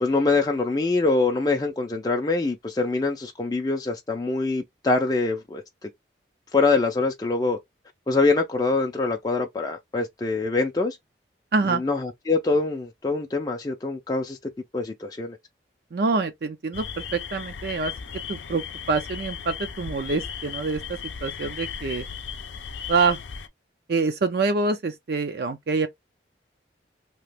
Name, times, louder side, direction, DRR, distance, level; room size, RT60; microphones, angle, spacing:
voice 1, 0.0-5.9 6.5-7.6 8.1-11.0 11.7-14.4 14.7-15.4, left 3 dB, 20° left, 0.4 m, -24 dB
voice 2, 11.5-11.8 15.9-17.9 18.3-22.0 22.9-23.2 23.9-25.9, right 4 dB, 55° right, 0.4 m, -26 dB
sound 1, 16.7-23.5, left 7 dB, 90° left, 0.5 m, -36 dB
3.0 x 2.4 x 3.3 m
head